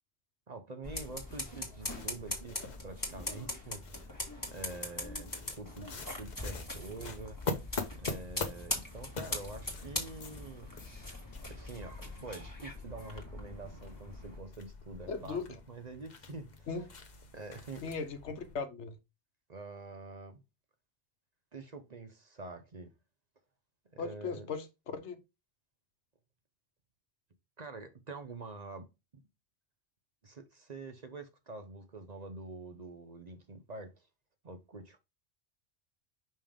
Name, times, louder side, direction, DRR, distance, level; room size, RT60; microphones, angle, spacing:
voice 1, 0.5-7.4 7.9-10.7 11.5-16.7 17.3-17.8 19.5-20.4 21.5-22.9 23.9-24.5 27.6-29.2 30.2-34.1 34.4-35.0, right 3 dB, 40° right, 0.8 m, -46 dB
sound 1, 0.8-14.4, left 2 dB, 15° left, 1.5 m, -41 dB
sound 2, 0.9-18.6, left 4 dB, 40° left, 0.9 m, -45 dB
voice 2, 15.1-15.4 16.7-16.9 17.8-18.9 24.0-24.7 24.9-25.2, left 5 dB, 75° left, 1.2 m, -37 dB
5.3 x 5.3 x 3.6 m
omnidirectional pair, 1.2 m